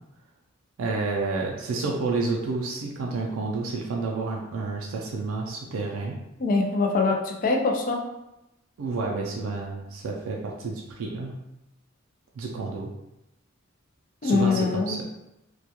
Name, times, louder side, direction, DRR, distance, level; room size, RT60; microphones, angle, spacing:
voice 1, 0.8-6.2 8.8-11.3 12.4-12.9 14.2-15.0, right 3 dB, 75° right, -1 dB, 0.3 m, -30 dB
voice 2, 6.4-8.0 14.2-15.0, left 3 dB, 40° left, 2 dB, 0.3 m, -23 dB
2.2 x 2.2 x 2.8 m, 0.92 s
head